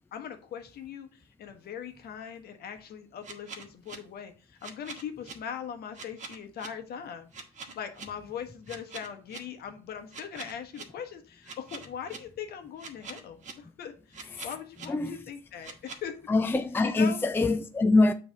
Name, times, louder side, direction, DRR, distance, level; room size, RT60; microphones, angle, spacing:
voice 1, 0.1-7.3 7.7-16.2 16.8-17.2, left 8 dB, 55° left, 1.3 m, -40 dB
sound 1, 3.2-4.0 4.6-5.3 5.9-6.7 7.3-8.1 8.7-9.4 10.1-10.8 11.4-12.2 12.8-13.5 14.1-14.9 15.6-16.0, right 4 dB, 40° right, 1.5 m, -43 dB
voice 2, 14.3-15.3 16.3-18.1, left 3 dB, 10° left, 0.5 m, -25 dB
7.0 x 3.4 x 5.3 m
hypercardioid pair, 70°, 19 cm